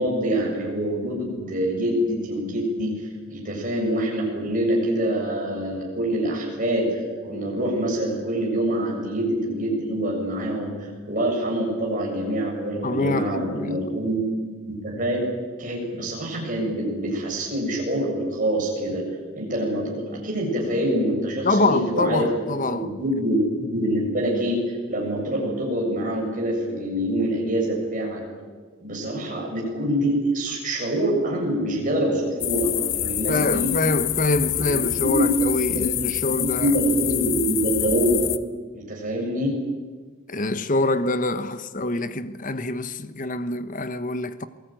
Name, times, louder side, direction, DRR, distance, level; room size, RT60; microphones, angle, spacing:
voice 1, 0.0-2.9 3.3-10.7 11.1-14.2 14.7-15.2 15.6-19.0 19.3-22.3 22.7-24.6 24.9-28.2 28.8-33.7 34.5-35.3 35.7-35.8 36.2-38.1 38.7-39.6, right 1 dB, 40° right, 7.6 m, -25 dB
voice 2, 12.8-14.0 21.4-22.9 33.3-36.7 40.3-44.5, left 2 dB, 40° left, 1.1 m, -25 dB
sound 1, 32.4-38.4, left 13 dB, 75° left, 1.1 m, -26 dB
27.5 x 19.0 x 9.2 m
head